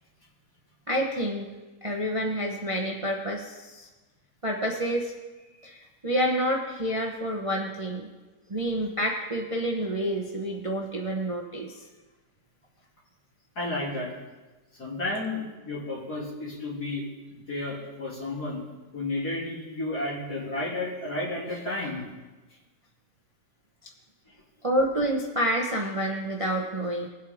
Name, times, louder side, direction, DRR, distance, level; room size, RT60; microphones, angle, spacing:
voice 1, 0.9-1.5 1.8-3.9 4.4-5.1 5.4-8.1 8.5-11.7 23.8-23.9 24.6-27.1, equal, 25° right, 0 dB, 0.8 m, -28 dB
voice 2, 13.6-14.1 14.8-17.0 17.3-18.6 18.9-22.0 24.3-24.4, left 2 dB, 60° left, -5 dB, 3.7 m, -32 dB
20.5 x 8.2 x 3.6 m, 1.2 s
omnidirectional pair, 1.9 m